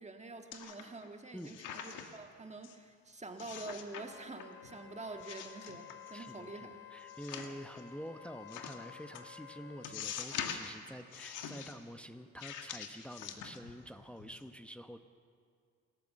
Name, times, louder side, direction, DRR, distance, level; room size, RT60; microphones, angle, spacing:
voice 1, 0.0-6.8, right 3 dB, 20° right, 5 dB, 1.6 m, -47 dB
sound 1, 0.5-1.1 1.4-2.2 2.6-2.8 3.4-4.0 4.4-4.8 5.2-6.3 7.1-7.8 8.5-8.8 9.1-9.2 9.8-10.7 11.1-11.7 12.4-13.9 14.2-14.4, left 8 dB, 90° left, 1.8 m, -44 dB
Wind instrument woodwind instrument, 3.9-10.0, left 9 dB, 45° left, 2.6 m, -53 dB
voice 2, 6.1-6.5 6.9-15.0, equal, 5° left, 7 dB, 0.9 m, -47 dB
28.0 x 14.0 x 7.6 m, 2.2 s
cardioid pair, 90°, 30 cm